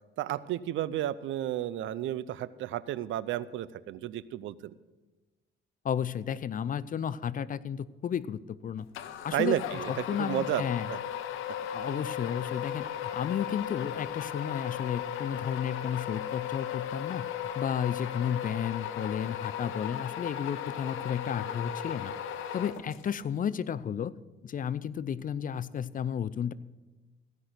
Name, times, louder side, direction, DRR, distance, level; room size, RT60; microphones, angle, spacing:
voice 1, 0.2-4.8 9.3-11.0, right 12 dB, 80° right, 18 dB, 0.5 m, -32 dB
voice 2, 5.8-8.9 9.2-9.6 10.1-10.9 11.7-17.3 17.6-22.1 22.5-24.1 24.4-26.5, left 8 dB, 45° left, 17 dB, 0.5 m, -33 dB
sound 1, 8.9-23.2, left 10 dB, 85° left, 0.8 m, -36 dB
15.5 x 6.0 x 7.9 m, 1.2 s
cardioid pair, 90°, 20 cm